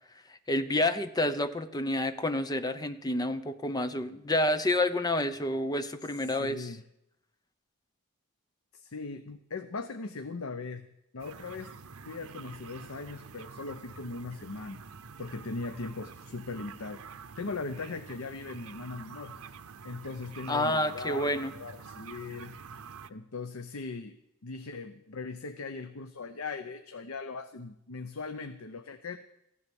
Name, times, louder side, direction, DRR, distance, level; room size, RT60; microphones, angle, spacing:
voice 1, 0.5-6.7 20.5-21.5, left 1 dB, 20° left, 11 dB, 0.7 m, -29 dB
voice 2, 6.4-6.8 8.7-10.8 11.1-11.7 12.1-14.8 15.2-19.3 19.8-22.5 23.1-24.2 24.4-29.2, left 3 dB, 80° left, 8 dB, 0.8 m, -39 dB
sound 1, 11.2-23.1, right 5 dB, 90° right, 0.7 m, -47 dB
15.0 x 11.0 x 7.1 m, 0.81 s
head